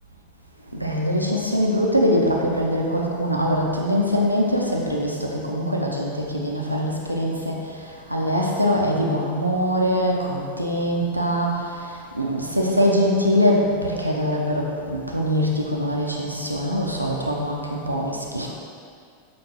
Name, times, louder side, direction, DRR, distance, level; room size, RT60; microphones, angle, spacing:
voice 1, 0.7-18.5, equal, 90° right, -2 dB, 0.4 m, -23 dB
5.9 x 2.5 x 2.8 m, 2.3 s
figure-of-eight pair, 90°, 0 cm